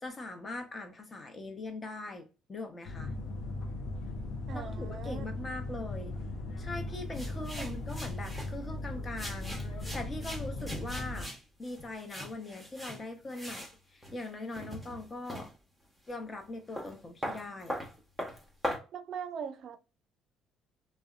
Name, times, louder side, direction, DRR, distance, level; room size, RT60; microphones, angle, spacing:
voice 1, 0.0-3.1 4.5-6.1 6.6-9.6 9.9-13.7 13.9-15.5 16.1-17.8, left 2 dB, 30° left, 0.7 m, -41 dB
sound 1, 2.9-11.3, left 2 dB, 65° left, 0.5 m, -38 dB
voice 2, 4.5-5.3 7.6-7.8 18.9-19.8, right 7 dB, 60° right, 0.4 m, -41 dB
sound 2, 7.1-8.5 9.2-13.0 13.3-13.8 14.0-15.5 16.1-16.2 16.4-18.8, equal, ahead, 0.8 m, -40 dB
2.7 x 2.1 x 2.4 m
cardioid pair, 95°, 0 cm